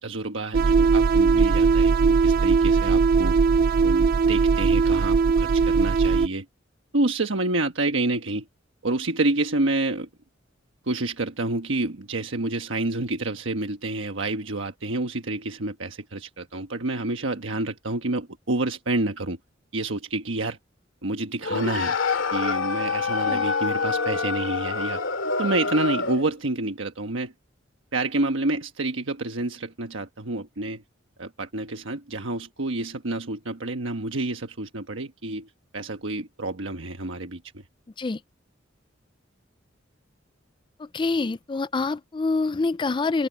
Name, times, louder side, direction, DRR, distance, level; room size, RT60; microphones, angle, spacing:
voice 1, 0.0-3.4 3.8-6.4 6.9-8.5 8.8-10.1 10.9-19.4 19.7-20.6 21.0-22.0 22.3-25.0 25.4-27.3 27.9-30.8 31.2-37.6, right 2 dB, 75° right, 1.3 m, -28 dB
sound 1, 0.5-6.3, right 5 dB, 50° right, 0.4 m, -19 dB
sound 2, 21.4-26.3, left 4 dB, 75° left, 2.7 m, -26 dB
voice 2, 40.8-43.3, left 3 dB, 25° left, 0.4 m, -26 dB
head